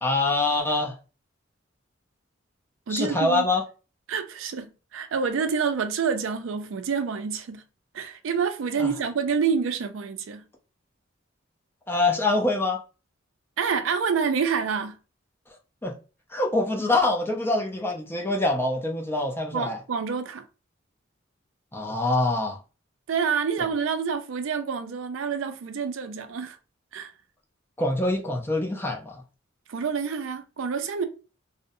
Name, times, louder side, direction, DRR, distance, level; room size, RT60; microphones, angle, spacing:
voice 1, 0.0-0.9 2.9-3.6 8.8-8.9 11.9-12.8 15.8-15.9 16.3-19.8 21.7-22.6 27.8-29.2, left 2 dB, 10° left, 0.4 m, -25 dB
voice 2, 2.9-3.5 4.1-7.6 7.9-10.4 13.6-14.9 19.5-20.4 23.1-26.6 26.9-27.1 29.7-31.0, right 6 dB, 75° right, 0.4 m, -27 dB
2.5 x 2.1 x 2.6 m
head